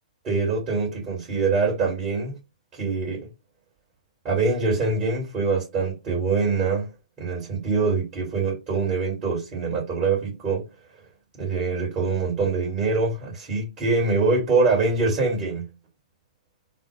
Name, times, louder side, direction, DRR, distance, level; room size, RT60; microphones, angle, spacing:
voice 1, 0.2-2.4 2.8-3.3 4.2-10.7 11.4-15.7, right 4 dB, 25° right, 2.5 m, -24 dB
3.7 x 2.5 x 3.3 m
figure-of-eight pair, 120°, 4 cm